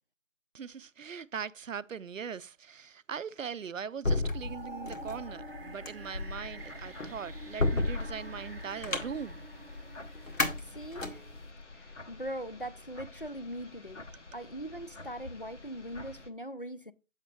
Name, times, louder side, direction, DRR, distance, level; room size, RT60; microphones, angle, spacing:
voice 1, 0.5-9.4, right 7 dB, 80° right, 0.5 m, -40 dB
sound 1, 4.0-11.4, left 2 dB, 85° left, 1.8 m, -33 dB
sound 2, 4.3-11.4, right 2 dB, 50° right, 0.8 m, -48 dB
sound 3, 6.6-16.3, left 2 dB, 65° left, 0.9 m, -49 dB
voice 2, 10.3-11.3 11.7-14.1 14.3-16.9, equal, 45° left, 0.5 m, -41 dB
7.2 x 7.0 x 3.1 m
figure-of-eight pair, 175°, 38 cm